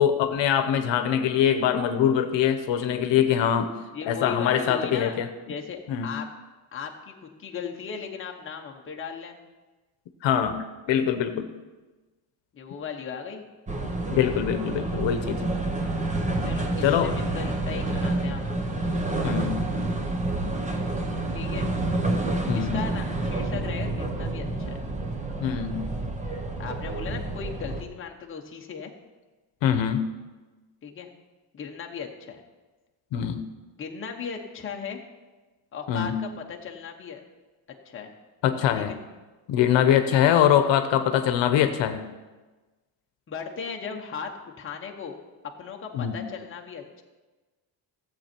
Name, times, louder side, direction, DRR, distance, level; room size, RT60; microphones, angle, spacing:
voice 1, 0.0-3.7 4.1-5.3 5.9-6.1 10.2-11.5 14.1-15.4 16.8-17.1 19.2-19.5 22.5-22.7 25.4-25.8 29.6-30.0 33.1-33.4 35.9-36.1 38.4-38.9 39.5-42.0 45.9-46.2, left 9 dB, 70° left, 8 dB, 1.0 m, -23 dB
voice 2, 3.9-5.2 5.5-6.3 6.7-9.4 12.5-13.4 16.4-18.7 21.3-21.7 22.5-24.8 26.6-28.9 30.8-31.1 31.5-32.4 33.8-35.0 35.7-37.2 37.8-38.1 38.8-39.0 40.1-40.3 43.3-44.3 44.6-45.2 45.6-47.0, left 6 dB, 25° left, 1 dB, 1.0 m, -37 dB
sound 1, 13.7-27.8, right 2 dB, 15° right, 0.8 m, -29 dB
15.0 x 7.8 x 4.4 m, 1.2 s
cardioid pair, 175°, 45 cm